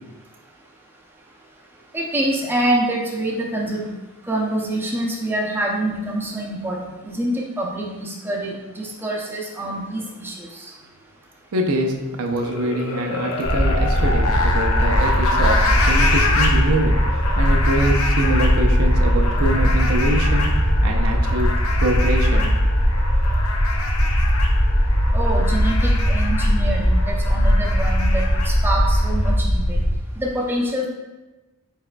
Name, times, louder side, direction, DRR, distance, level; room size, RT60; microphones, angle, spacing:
voice 1, 1.9-3.9 4.3-6.8 7.0-10.7 25.1-29.8 30.2-30.9, right 1 dB, 10° right, -2 dB, 0.5 m, -26 dB
voice 2, 11.5-20.5 20.8-21.5 21.8-22.5, right 1 dB, 85° right, 3 dB, 0.5 m, -24 dB
sound 1, 12.3-29.3, left 3 dB, 75° left, 0.6 m, -27 dB
sound 2, 13.4-30.0, equal, 20° left, 1.1 m, -19 dB
4.7 x 4.2 x 2.2 m, 1.1 s
head